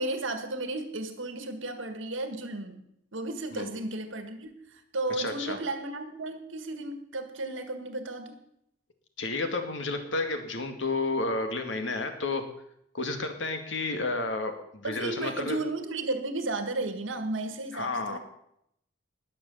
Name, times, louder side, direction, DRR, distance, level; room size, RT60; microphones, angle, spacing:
voice 1, 0.0-2.8 3.1-8.4 14.8-18.2, right 2 dB, 80° right, 8 dB, 1.8 m, -34 dB
voice 2, 5.2-5.6 9.2-12.4 12.9-15.6 17.7-18.2, left 3 dB, 70° left, 6 dB, 2.1 m, -31 dB
20.0 x 6.8 x 7.0 m, 0.75 s
head